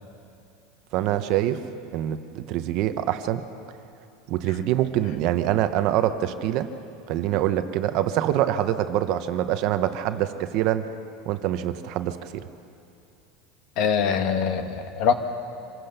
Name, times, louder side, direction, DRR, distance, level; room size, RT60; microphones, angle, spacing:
voice 1, 0.9-1.6 1.9-3.4 4.3-6.7 7.1-10.9 11.2-12.4, right 12 dB, 45° right, 10 dB, 0.8 m, -25 dB
voice 2, 13.8-15.1, left 7 dB, 45° left, 8 dB, 1.3 m, -23 dB
25.0 x 16.5 x 6.7 m, 2.7 s
supercardioid pair, 170°, 0 cm